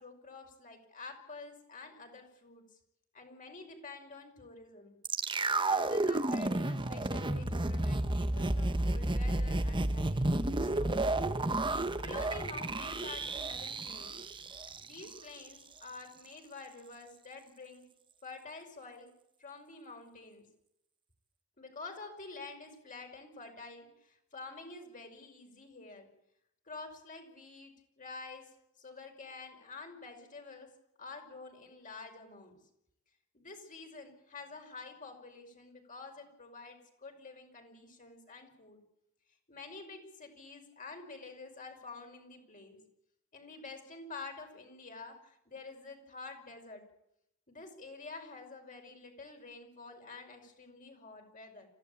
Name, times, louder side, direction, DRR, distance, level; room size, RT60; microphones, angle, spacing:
voice 1, 0.0-2.6 3.1-5.0 5.6-11.2 12.0-14.2 14.8-17.9 18.2-19.1 19.4-20.5 21.6-26.1 26.7-28.5 28.8-30.7 31.0-32.5 33.3-38.8 39.5-42.8 43.3-46.8 47.5-51.7, left 3 dB, 40° left, 3 dB, 5.6 m, -48 dB
sound 1, 5.0-15.2 15.4-15.5, right 2 dB, 20° right, 1.2 m, -32 dB
26.0 x 16.0 x 8.7 m, 0.80 s
head